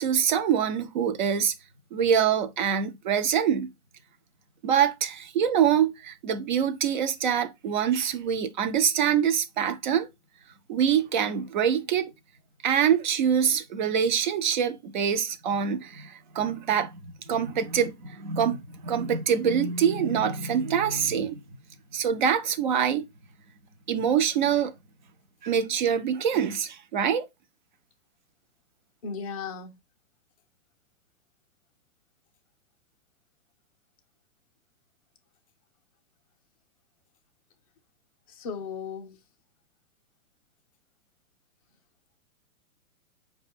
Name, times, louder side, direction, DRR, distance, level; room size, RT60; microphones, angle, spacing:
voice 1, 0.0-1.5 1.9-3.7 4.6-10.1 10.7-12.1 12.6-16.9 17.3-21.4 21.9-23.1 23.9-24.7 25.4-27.3, right 8 dB, 35° right, 0.4 m, -25 dB
voice 2, 29.0-29.8 38.3-39.2, left 5 dB, 25° left, 0.4 m, -36 dB
4.9 x 2.2 x 4.0 m
hypercardioid pair, 150°, 43 cm